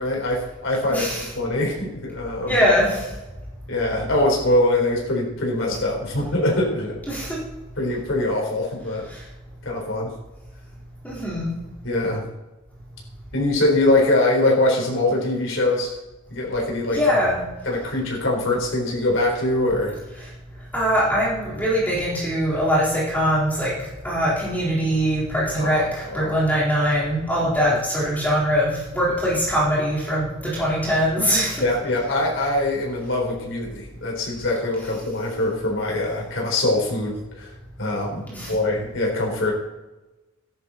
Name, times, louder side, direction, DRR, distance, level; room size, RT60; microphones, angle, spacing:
voice 1, 0.0-2.6 3.7-7.0 7.8-9.1 9.6-10.1 11.8-12.3 13.3-15.9 16.3-17.2 17.7-20.0 25.6-26.4 31.6-37.5 37.8-39.5, left 2 dB, 70° left, -2 dB, 4.2 m, -23 dB
voice 2, 0.9-1.3 2.5-3.1 7.1-7.4 9.1-9.2 11.0-11.5 16.9-17.4 20.7-31.6 38.3-38.5, equal, 10° left, -6 dB, 4.3 m, -22 dB
14.0 x 10.5 x 4.3 m, 1.0 s
head